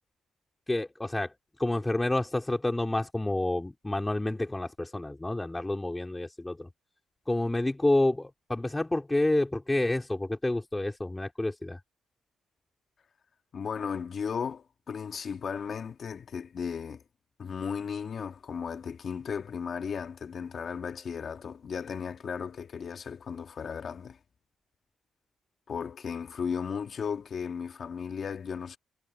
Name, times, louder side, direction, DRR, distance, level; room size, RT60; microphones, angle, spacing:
voice 1, 0.7-1.3 1.6-6.7 7.3-11.8, left 2 dB, 15° left, 4.3 m, -29 dB
voice 2, 13.5-17.0 17.4-24.2 25.7-28.8, left 6 dB, 50° left, 1.8 m, -35 dB
cardioid pair, 90°, 0 cm